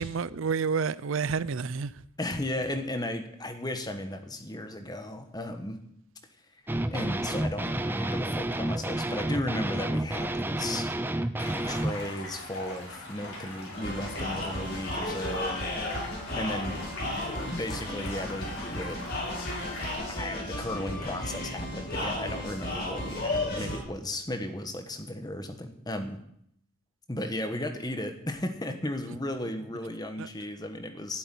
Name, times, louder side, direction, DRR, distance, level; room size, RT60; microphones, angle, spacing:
voice 1, 0.0-1.9 23.6-23.7 30.2-30.3, right 5 dB, 65° right, 0.5 m, -29 dB
voice 2, 2.2-5.8 6.9-10.9 11.4-19.1 19.8-19.9 20.2-26.2 27.1-31.2, left 1 dB, 20° left, 1.4 m, -35 dB
sound 1, 6.7-11.9, right 1 dB, 10° right, 0.5 m, -30 dB
Stream, 11.4-19.9, left 2 dB, 85° left, 6.0 m, -41 dB
sound 2, 13.7-23.8, left 1 dB, 45° left, 6.4 m, -34 dB
12.0 x 8.1 x 10.0 m
head